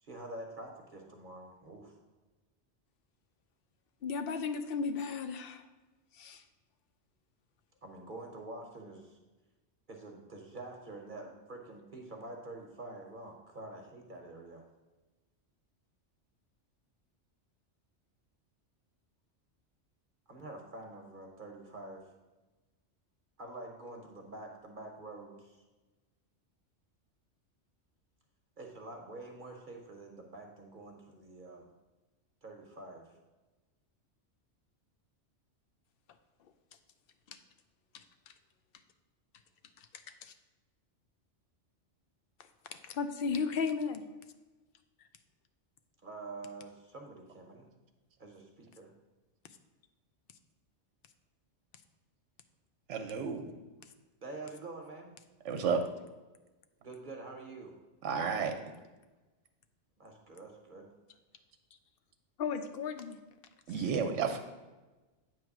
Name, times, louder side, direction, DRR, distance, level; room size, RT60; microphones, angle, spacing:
voice 1, 0.0-2.0 7.8-9.2 9.9-14.6 20.3-22.0 23.4-25.6 28.6-31.7 32.4-33.1 46.0-47.7 48.2-48.9 54.2-55.1 56.8-57.7 60.0-60.9, right 2 dB, 45° right, 1 dB, 0.9 m, -47 dB
voice 2, 4.0-5.7 6.1-6.4 37.3-37.4 37.9-38.3 39.8-39.9 40.2-40.3 42.7-44.1 62.4-63.2 63.8-63.9, left 5 dB, 60° left, 9 dB, 0.7 m, -35 dB
voice 3, 52.9-53.5 55.4-55.8 58.0-58.5 63.7-64.4, right 6 dB, 80° right, 6 dB, 1.0 m, -31 dB
8.5 x 3.1 x 5.9 m, 1.2 s
omnidirectional pair, 1.2 m